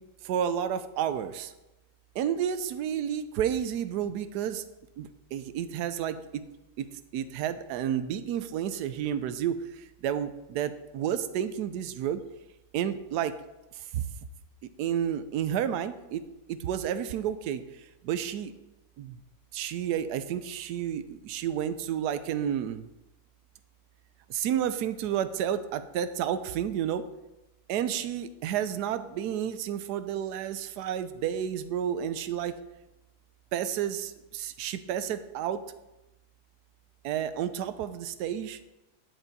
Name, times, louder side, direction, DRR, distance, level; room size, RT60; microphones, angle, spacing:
voice 1, 0.2-1.5 2.1-4.6 5.0-6.4 6.8-12.2 12.7-13.3 13.7-14.1 14.6-16.2 16.5-18.5 19.0-19.2 19.5-22.9 24.3-27.0 27.7-32.5 33.5-35.6 37.0-38.6, right 9 dB, 70° right, 11 dB, 1.1 m, -31 dB
11.5 x 8.1 x 4.1 m, 0.97 s
omnidirectional pair, 2.0 m